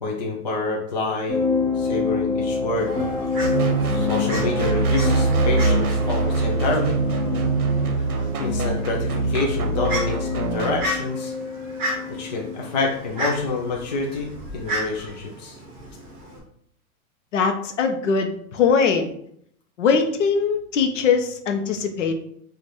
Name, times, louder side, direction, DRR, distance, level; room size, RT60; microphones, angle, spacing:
voice 1, 0.0-1.5 1.8-2.9 3.9-7.0 8.4-11.3 12.1-14.3 14.5-15.6, left 3 dB, 35° left, -2 dB, 0.4 m, -27 dB
sound 1, 1.3-13.0 13.9-14.2, left 4 dB, 15° left, 1.3 m, -28 dB
Fowl, 2.8-16.4, equal, 35° right, 1.5 m, -35 dB
sound 2, 3.4-10.8, right 3 dB, 80° right, 0.9 m, -23 dB
voice 2, 17.3-19.1 19.8-22.1, left 5 dB, 55° left, 6 dB, 0.7 m, -21 dB
4.7 x 2.5 x 4.1 m, 0.68 s
hypercardioid pair, 170°, 43 cm